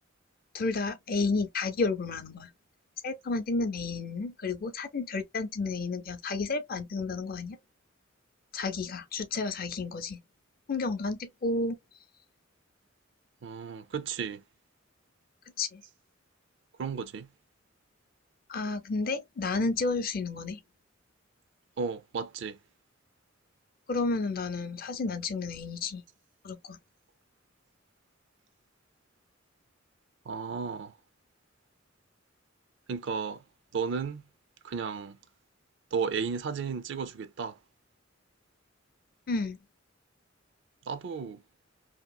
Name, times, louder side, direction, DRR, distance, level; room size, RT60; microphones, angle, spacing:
voice 1, 0.5-2.5 3.0-7.6 8.5-10.2 10.7-11.8 15.6-15.8 18.5-20.6 23.9-26.0 26.4-26.8 39.3-39.6, left 3 dB, 50° left, 0.5 m, -31 dB
voice 2, 13.4-14.4 16.8-17.3 21.8-22.6 30.3-30.9 32.9-33.4 33.7-34.2 34.6-35.2 35.9-37.6 40.9-41.4, right 5 dB, 65° right, 0.4 m, -34 dB
2.8 x 2.7 x 2.2 m
head